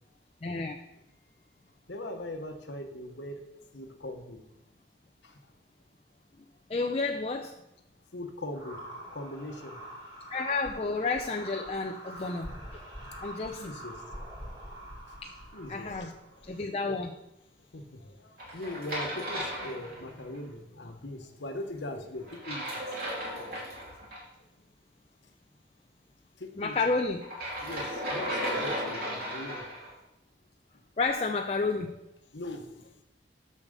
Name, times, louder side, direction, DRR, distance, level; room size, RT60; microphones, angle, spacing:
voice 1, 0.4-0.8 6.7-7.5 10.3-12.8 13.2-13.7 15.2-15.3 15.7-16.1 16.4-17.1 26.6-27.3 31.0-31.9, left 3 dB, 35° left, 3 dB, 0.5 m, -31 dB
voice 2, 1.9-3.4 3.7-4.4 5.2-5.4 8.1-8.8 9.1-9.8 13.6-14.0 15.5-16.1 16.5-16.6 17.7-22.8 26.4-26.7 27.6-29.7 32.3-33.0, left 1 dB, 75° left, 6 dB, 1.1 m, -40 dB
sound 1, 8.5-16.6, equal, 25° right, 2.5 m, -45 dB
sound 2, 18.4-20.4 22.3-24.2 27.2-29.9, equal, 50° right, 2.8 m, -35 dB
7.3 x 6.4 x 6.6 m, 0.87 s
head